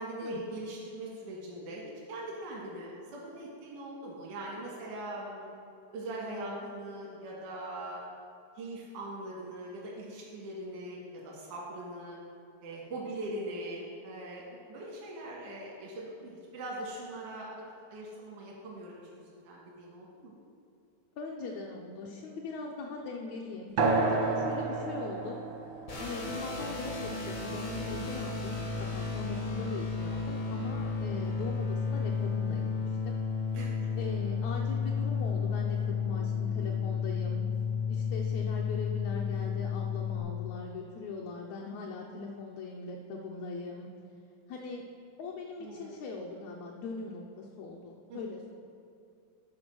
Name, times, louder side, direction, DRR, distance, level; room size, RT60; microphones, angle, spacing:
voice 1, 0.0-5.5 5.9-8.0 8.6-12.2 12.6-14.4 14.7-17.6 17.9-20.3 29.1-29.2 33.5-33.7 45.6-45.9 48.1-48.2, right 1 dB, 85° right, -4 dB, 2.9 m, -41 dB
voice 2, 21.2-25.4 26.0-33.2 34.0-37.5 37.9-43.9 44.5-44.8 45.2-48.5, left 4 dB, 75° left, -1 dB, 1.9 m, -40 dB
sound 1, 23.8-28.8, right 3 dB, 70° right, 1.0 m, -32 dB
sound 2, 25.9-40.2, left 5 dB, 55° left, 0.7 m, -32 dB
11.5 x 4.5 x 6.1 m, 2.4 s
omnidirectional pair, 3.6 m